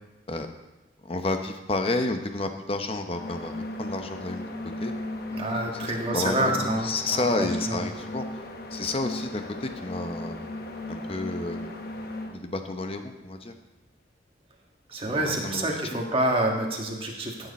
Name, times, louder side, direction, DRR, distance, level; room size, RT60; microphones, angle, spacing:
voice 1, 1.0-4.4 4.8-4.9 5.8-8.2 8.7-10.4 10.9-11.7 12.3-13.5 15.1-15.7, left 2 dB, 35° left, 6 dB, 0.8 m, -30 dB
sound 1, 3.1-12.4, left 1 dB, 60° left, 0.9 m, -36 dB
voice 2, 5.3-7.9 14.9-17.5, right 1 dB, 30° right, 0 dB, 1.6 m, -28 dB
15.5 x 6.8 x 4.2 m, 1.1 s
head